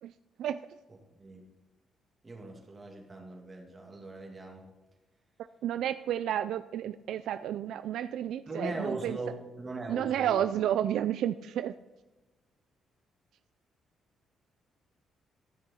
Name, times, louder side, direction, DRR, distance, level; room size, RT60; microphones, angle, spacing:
voice 1, 2.2-4.7 8.5-10.4, right 2 dB, 25° right, 1 dB, 2.4 m, -39 dB
voice 2, 5.6-9.2 9.9-11.7, right 10 dB, 80° right, 12 dB, 0.3 m, -31 dB
13.0 x 6.1 x 4.2 m, 1.1 s
cardioid pair, 90°, 0 cm